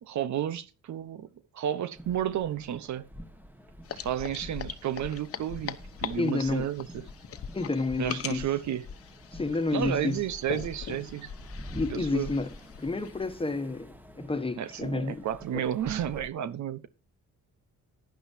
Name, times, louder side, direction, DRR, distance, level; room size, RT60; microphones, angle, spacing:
voice 1, 0.0-1.3 1.5-3.1 3.9-7.1 8.0-8.9 9.7-11.3 11.9-12.3 14.6-16.9, right 10 dB, 70° right, 1.0 m, -32 dB
sound 1, 2.0-16.3, equal, 5° right, 1.6 m, -47 dB
sound 2, 3.8-13.4, left 8 dB, 50° left, 1.0 m, -41 dB
voice 2, 6.1-6.7 7.5-8.4 9.3-10.2 11.7-12.5 12.8-15.3 15.5-15.6, left 3 dB, 20° left, 1.5 m, -30 dB
15.0 x 10.5 x 2.8 m
cardioid pair, 90°, 30 cm